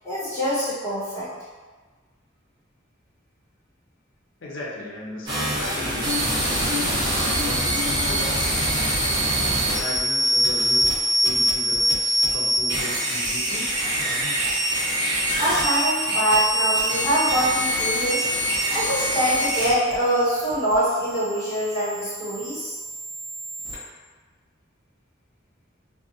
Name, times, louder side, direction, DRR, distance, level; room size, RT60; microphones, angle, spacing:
voice 1, 0.0-1.3 15.4-18.3 18.7-22.7, equal, 15° left, -13 dB, 1.2 m, -24 dB
voice 2, 4.4-8.4 9.4-10.8 11.2-13.8, left 1 dB, 65° left, -3 dB, 0.5 m, -36 dB
sound 1, 5.3-23.7, equal, 25° right, 0.7 m, -24 dB
2.5 x 2.0 x 2.6 m, 1.4 s
head